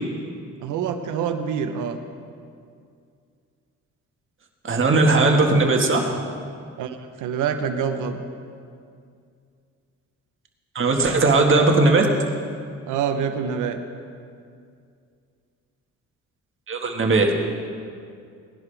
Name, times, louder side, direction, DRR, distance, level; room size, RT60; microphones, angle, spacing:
voice 1, 0.6-2.0 6.8-8.2 12.9-13.8, right 7 dB, 85° right, 7 dB, 1.0 m, -26 dB
voice 2, 4.6-6.1 10.7-12.1 16.7-17.2, right 3 dB, 40° right, 2 dB, 1.7 m, -18 dB
19.0 x 11.0 x 3.4 m, 2.3 s
cardioid pair, 90°, 30 cm